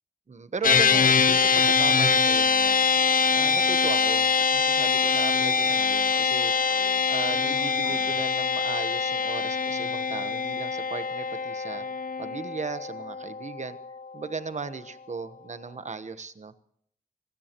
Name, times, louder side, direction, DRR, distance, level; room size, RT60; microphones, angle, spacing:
voice 1, 0.3-2.8 3.3-6.5 7.1-13.8 14.1-16.5, right 4 dB, 55° right, 11 dB, 1.2 m, -36 dB
sound 1, 0.6-14.2, left 5 dB, 70° left, 1.0 m, -24 dB
sound 2, 0.7-8.2, equal, 15° right, 7.1 m, -52 dB
25.5 x 17.0 x 3.1 m, 0.64 s
wide cardioid pair, 90°, 15 cm